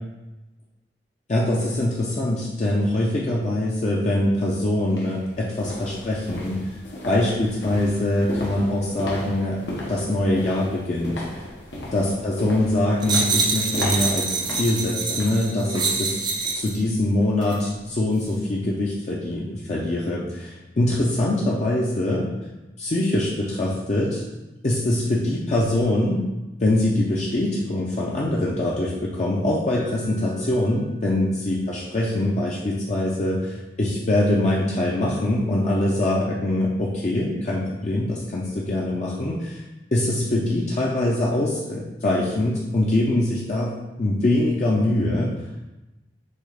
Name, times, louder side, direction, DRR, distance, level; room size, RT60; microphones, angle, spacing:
voice 1, 1.3-6.7 7.1-9.6 9.9-11.2 11.9-16.2 16.5-22.3 22.8-24.2 24.6-26.2 26.6-39.6 39.9-43.7 44.0-45.3, left 1 dB, 40° left, -4 dB, 0.5 m, -23 dB
sound 1, 4.1-4.2 4.8-16.1 16.4-16.7 17.1-17.2, left 1 dB, 80° left, 0.9 m, -36 dB
sound 2, 13.0-16.8 17.4-17.6, right 4 dB, 25° right, 0.4 m, -25 dB
Mallet percussion, 29.7-35.6, left 7 dB, 80° right, 1.4 m, -48 dB
6.3 x 2.4 x 3.3 m, 1.0 s
head